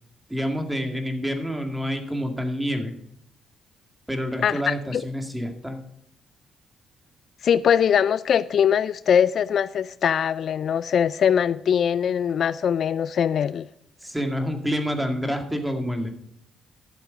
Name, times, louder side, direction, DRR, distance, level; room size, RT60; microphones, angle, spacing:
voice 1, 0.3-2.9 4.1-5.8 14.0-16.1, equal, 5° right, 2.1 m, -28 dB
voice 2, 4.4-5.0 7.4-13.7, left 8 dB, 60° left, 0.3 m, -22 dB
12.0 x 7.4 x 5.2 m
cardioid pair, 80°, 0 cm